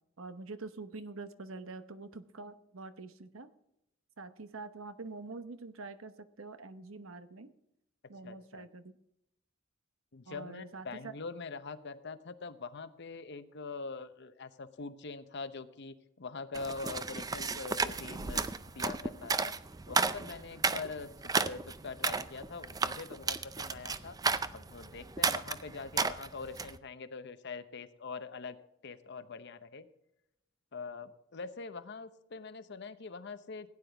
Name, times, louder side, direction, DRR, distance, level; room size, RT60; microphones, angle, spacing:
voice 1, 0.2-3.5 4.2-7.5 8.1-8.9 10.3-11.1, right 3 dB, 85° right, 11 dB, 0.9 m, -45 dB
voice 2, 8.2-8.7 10.1-19.5 19.9-24.2 24.5-28.6 28.8-29.9 30.7-33.7, left 4 dB, 60° left, 12 dB, 0.8 m, -43 dB
sound 1, 16.5-26.8, right 4 dB, 20° right, 0.4 m, -33 dB
16.5 x 9.7 x 3.5 m, 0.82 s
head